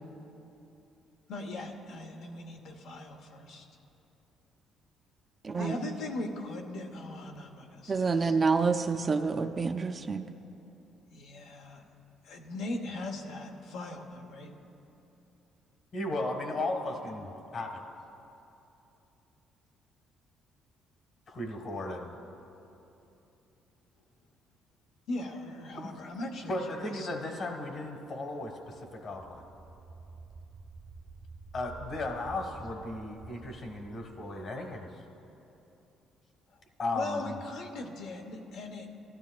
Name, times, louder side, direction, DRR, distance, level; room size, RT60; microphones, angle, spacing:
voice 1, 1.3-3.7 5.5-8.4 11.1-11.8 12.2-14.5 25.1-27.1 36.5-36.6 36.9-38.9, left 2 dB, 80° left, 2 dB, 1.0 m, -39 dB
voice 2, 5.4-5.7 7.9-10.2, right 4 dB, 30° right, 7 dB, 0.4 m, -28 dB
voice 3, 15.9-17.8 21.3-22.1 25.8-29.4 31.5-35.0 36.8-37.4, left 2 dB, 50° left, 3 dB, 1.4 m, -36 dB
sound 1, 28.6-35.3, right 4 dB, 65° right, 0.8 m, -50 dB
16.0 x 12.0 x 2.3 m, 2.9 s
cardioid pair, 105°, 0 cm